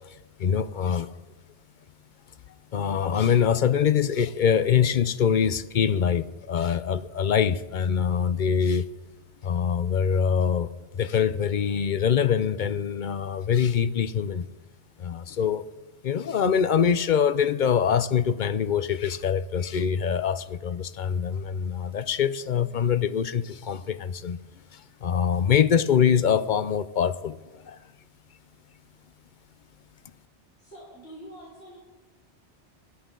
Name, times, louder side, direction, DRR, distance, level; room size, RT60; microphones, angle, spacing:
voice 1, 0.4-1.1 2.7-8.9 9.4-14.5 15.0-15.6 16.0-24.4 24.7-27.8, left 7 dB, 55° left, 14 dB, 0.6 m, -24 dB
voice 2, 30.6-31.8, right 1 dB, 70° left, -8 dB, 4.4 m, -45 dB
26.0 x 10.5 x 3.8 m, 1.2 s
omnidirectional pair, 1.2 m